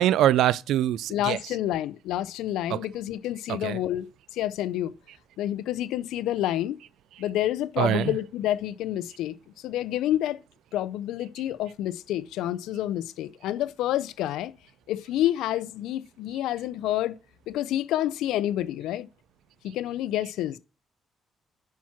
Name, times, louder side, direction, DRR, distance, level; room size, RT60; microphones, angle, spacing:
voice 1, 0.0-1.4 2.7-2.8 3.5-3.8 7.8-8.1, right 12 dB, 85° right, 0.3 m, -23 dB
voice 2, 1.1-4.9 5.4-6.8 7.2-9.4 9.6-10.4 10.7-14.5 14.9-17.2 17.5-19.1 19.6-20.6, left 13 dB, 90° left, 0.5 m, -28 dB
7.3 x 5.8 x 5.9 m
cardioid pair, 90°, 0 cm